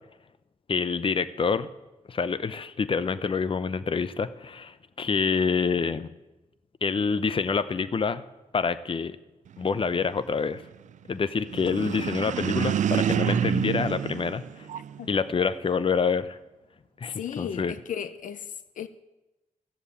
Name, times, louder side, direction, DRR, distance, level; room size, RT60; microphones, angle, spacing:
voice 1, 0.7-1.7 2.1-6.1 6.8-8.2 8.5-9.2 9.6-10.6 11.1-14.4 15.1-16.4 17.0-17.7, left 5 dB, 40° left, 0.7 m, -27 dB
sound 1, 11.5-15.1, right 9 dB, 70° right, 0.4 m, -27 dB
voice 2, 17.2-18.9, left 8 dB, 80° left, 0.6 m, -35 dB
14.5 x 7.4 x 8.4 m
cardioid pair, 70°, 13 cm